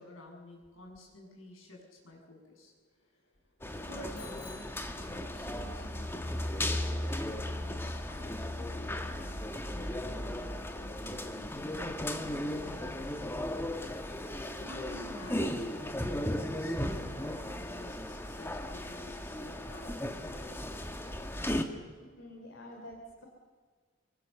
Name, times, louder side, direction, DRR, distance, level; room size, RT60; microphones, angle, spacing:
voice 1, 0.0-2.7 3.8-13.6 14.6-21.2, left 1 dB, 80° left, 0 dB, 7.6 m, -51 dB
sound 1, 3.6-21.7, left 1 dB, 10° left, 1.5 m, -36 dB
Bicycle bell, 4.1-5.7, left 4 dB, 50° left, 7.6 m, -54 dB
voice 2, 22.0-23.3, left 1 dB, 65° left, 0 dB, 3.4 m, -48 dB
26.5 x 24.0 x 6.9 m, 1.5 s
head